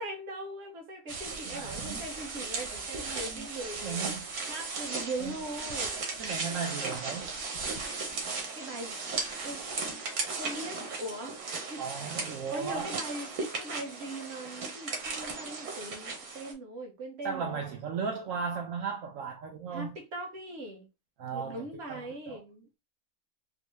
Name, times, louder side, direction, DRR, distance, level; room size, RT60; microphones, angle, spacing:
voice 1, 0.0-4.1 4.5-6.0 8.5-9.0 9.4-9.6 10.3-11.4 11.6-11.8 12.1-12.2 12.5-13.3 13.6-17.6 19.7-20.9 21.3-22.8, right 1 dB, 50° right, 1.1 m, -40 dB
sound 1, 1.1-16.5, right 4 dB, 90° right, 1.4 m, -36 dB
voice 2, 1.5-2.0 3.3-3.5 3.8-4.2 5.2-5.3 6.2-7.3 11.8-13.0 17.2-19.9 21.2-22.4, right 6 dB, 70° right, 1.0 m, -36 dB
3.8 x 2.0 x 3.1 m
omnidirectional pair, 1.5 m